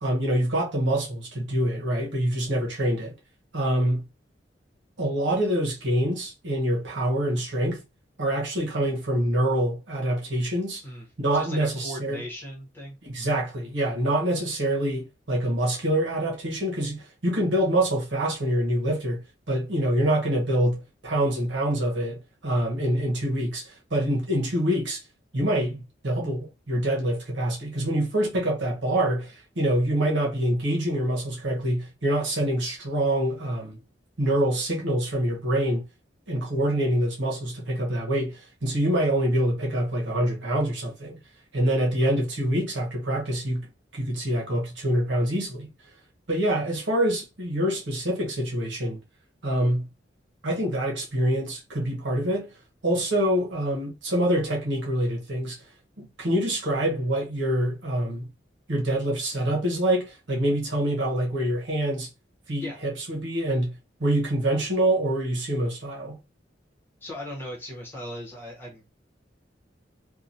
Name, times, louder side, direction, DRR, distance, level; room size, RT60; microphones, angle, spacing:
voice 1, 0.0-3.1 3.5-4.1 5.0-7.8 8.2-10.8 11.2-12.2 13.0-19.2 19.5-25.0 25.3-33.8 34.2-35.8 36.3-41.2 41.5-43.7 43.9-45.7 46.3-49.0 49.4-49.9 50.4-52.5 52.8-55.6 56.2-58.3 58.7-62.1 62.5-66.2, right 1 dB, 85° right, 1.0 m, -25 dB
voice 2, 11.3-13.0 62.6-62.8 67.0-68.8, equal, 10° left, 1.0 m, -38 dB
2.8 x 2.3 x 2.5 m
head